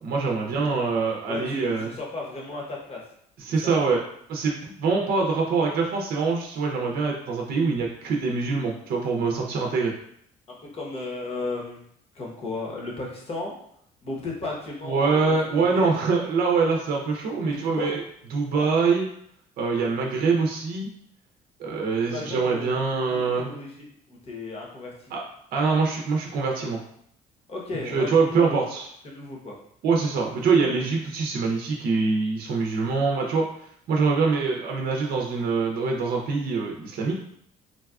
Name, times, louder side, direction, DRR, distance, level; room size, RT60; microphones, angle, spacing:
voice 1, 0.0-1.9 3.4-4.0 4.3-9.9 14.8-18.0 18.3-19.1 19.6-20.9 21.6-23.5 25.1-25.2 25.5-26.8 27.9-28.9 29.8-33.5 33.9-37.2, right 4 dB, 60° right, 0 dB, 0.6 m, -24 dB
voice 2, 1.3-3.0 3.6-3.7 10.5-11.8 12.1-13.6 14.0-15.9 17.4-18.0 18.5-18.7 22.0-22.7 23.3-25.1 27.5-28.7 29.0-29.6, left 2 dB, 35° left, -2 dB, 1.0 m, -35 dB
3.9 x 2.3 x 2.3 m, 0.68 s
cardioid pair, 110°, 17 cm